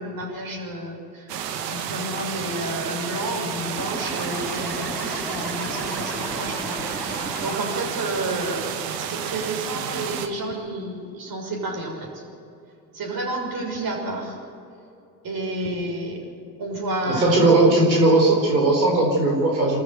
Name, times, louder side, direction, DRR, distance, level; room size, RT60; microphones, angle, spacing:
voice 1, 0.0-1.3 1.7-8.7 9.0-12.2 12.9-14.4 15.2-16.2 16.6-17.8, right 1 dB, 45° right, 0 dB, 6.5 m, -30 dB
sound 1, 1.3-10.3, right 8 dB, 70° right, 1.6 m, -31 dB
sound 2, 3.8-7.9, equal, 5° left, 4.7 m, -34 dB
voice 2, 17.1-19.8, right 2 dB, 90° right, -1 dB, 4.3 m, -18 dB
26.0 x 13.5 x 8.0 m, 2.6 s
figure-of-eight pair, 60°, 50 cm